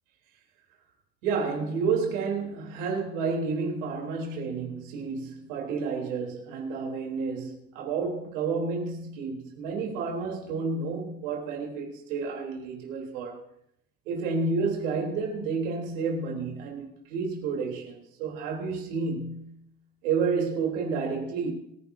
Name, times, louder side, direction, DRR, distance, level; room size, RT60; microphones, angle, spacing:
voice 1, 1.2-13.4 14.1-19.6 20.0-21.5, right 4 dB, 90° right, 3.7 m, -30 dB
26.5 x 10.5 x 2.8 m
supercardioid pair, 85°, 38 cm